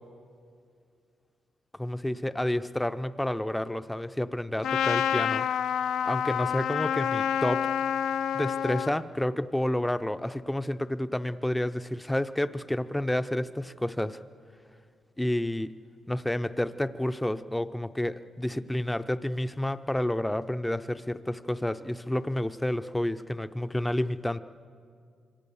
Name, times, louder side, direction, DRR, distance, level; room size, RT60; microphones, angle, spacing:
voice 1, 1.8-5.5 6.0-7.7 8.3-14.2 15.2-15.8 16.1-24.4, left 1 dB, 5° left, 11 dB, 0.5 m, -30 dB
Trumpet, 4.6-8.9, left 9 dB, 85° left, 0.6 m, -28 dB
27.0 x 24.0 x 7.0 m, 2.2 s
cardioid pair, 160°, 0 cm